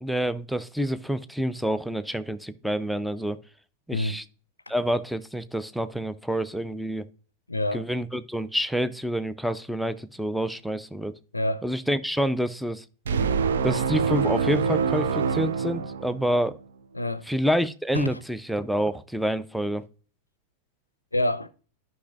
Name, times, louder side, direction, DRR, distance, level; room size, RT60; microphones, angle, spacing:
voice 1, 0.0-3.4 3.9-4.2 4.7-7.1 7.7-11.1 11.6-12.8 13.6-16.6 17.3-19.8, equal, ahead, 0.5 m, -27 dB
voice 2, 3.9-4.2 7.5-7.8 11.3-11.6 16.9-17.3 17.9-18.2 21.1-21.5, left 1 dB, 85° left, 0.5 m, -27 dB
sound 1, 13.1-16.5, right 6 dB, 65° right, 0.5 m, -25 dB
11.5 x 5.4 x 2.4 m
figure-of-eight pair, 90°, 0 cm